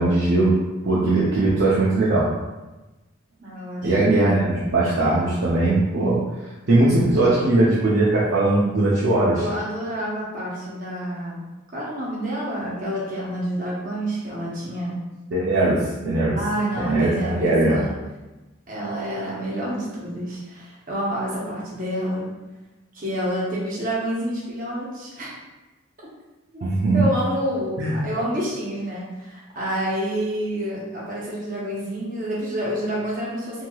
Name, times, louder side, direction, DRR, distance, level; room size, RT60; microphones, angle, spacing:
voice 1, 0.0-2.3 3.8-6.2 6.7-9.4 15.3-16.4 16.7-17.9 26.6-27.1 27.8-28.0, right 2 dB, 60° right, -7 dB, 0.5 m, -20 dB
voice 2, 3.4-3.9 9.4-11.4 11.7-14.9 16.3-17.9 18.7-22.3 22.9-25.3 26.5-26.7 26.9-33.6, equal, 40° right, -6 dB, 0.8 m, -28 dB
3.0 x 2.8 x 2.3 m, 1.1 s
head